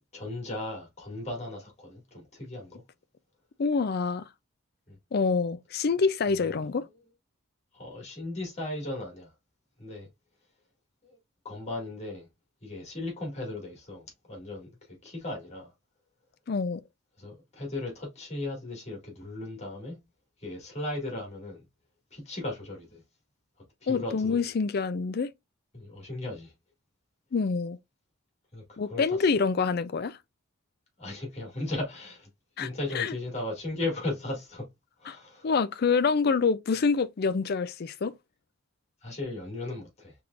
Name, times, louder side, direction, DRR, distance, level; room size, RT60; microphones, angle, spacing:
voice 1, 0.1-2.8 4.9-5.0 6.3-6.6 7.7-9.3 9.8-10.1 11.0-11.2 11.4-12.3 12.6-15.7 17.2-20.0 20.4-21.6 22.1-23.0 23.8-24.5 25.7-26.5 28.5-29.2 31.0-32.3 32.6-34.7 35.0-35.5 39.0-40.1, left 2 dB, 30° left, 2.0 m, -37 dB
voice 2, 3.6-4.2 5.1-6.8 16.5-16.8 23.9-25.3 27.3-27.8 28.8-30.2 32.6-32.7 32.9-33.1 35.1-35.2 35.4-38.1, left 5 dB, 50° left, 0.4 m, -26 dB
4.7 x 3.6 x 2.5 m
head